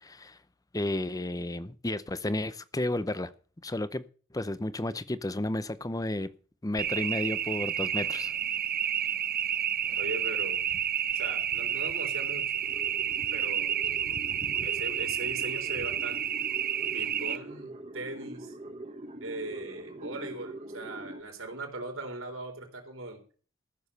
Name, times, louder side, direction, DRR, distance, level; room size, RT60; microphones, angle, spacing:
voice 1, 0.0-0.4 0.7-3.3 3.6-4.0 4.3-6.3 6.6-8.3, left 1 dB, 15° left, 0.6 m, -32 dB
sound 1, 6.8-17.4, right 9 dB, 45° right, 0.6 m, -30 dB
voice 2, 10.0-10.6 11.1-12.6 13.3-13.8 14.6-16.2 16.9-18.5 19.2-23.2, right 2 dB, 65° right, 3.8 m, -39 dB
sound 2, 12.6-21.2, right 1 dB, 30° right, 1.2 m, -44 dB
14.0 x 7.1 x 6.8 m
head